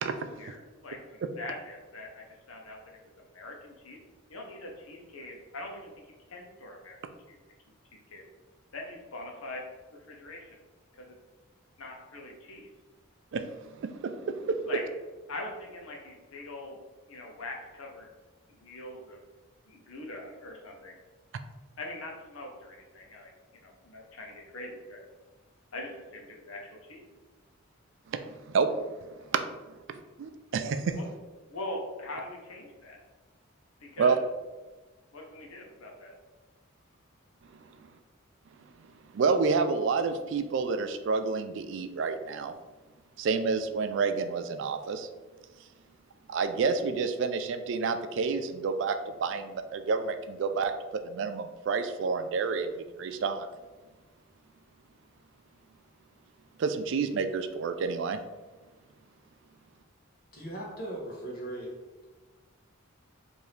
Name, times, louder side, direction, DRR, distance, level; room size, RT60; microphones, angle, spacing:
voice 1, 0.4-4.0 4.3-7.0 7.3-7.4 7.9-8.2 8.7-9.6 9.9-10.6 11.0-11.2 11.8-12.7 14.7-14.8 15.3-16.8 17.1-18.1 18.5-19.2 19.7-21.0 21.8-25.0 25.7-27.0 30.9-31.1 31.5-33.0 33.8-34.2 35.1-36.1, left 2 dB, 75° left, 0 dB, 0.8 m, -42 dB
voice 2, 13.3-14.6 28.1-28.7 29.3-29.4 30.2-31.0 34.0-34.2 39.1-42.5 43.2-45.1 46.3-53.5 56.6-58.2, right 5 dB, 55° right, 9 dB, 0.3 m, -29 dB
voice 3, 60.3-61.7, right 1 dB, 45° left, -3 dB, 1.0 m, -38 dB
4.6 x 2.6 x 3.2 m, 1.2 s
head